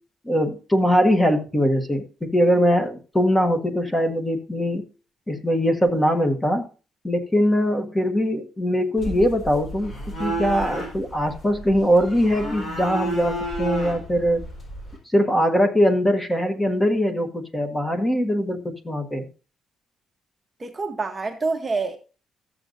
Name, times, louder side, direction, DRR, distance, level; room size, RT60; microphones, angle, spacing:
voice 1, 0.2-4.8 5.3-6.7 7.0-9.9 10.2-14.4 15.1-19.3, equal, 10° left, 1.4 m, -21 dB
sound 1, 9.0-15.0, right 2 dB, 40° left, 4.6 m, -32 dB
voice 2, 20.6-22.0, right 4 dB, 20° right, 0.9 m, -27 dB
13.5 x 7.9 x 2.6 m
cardioid pair, 150°, 0 cm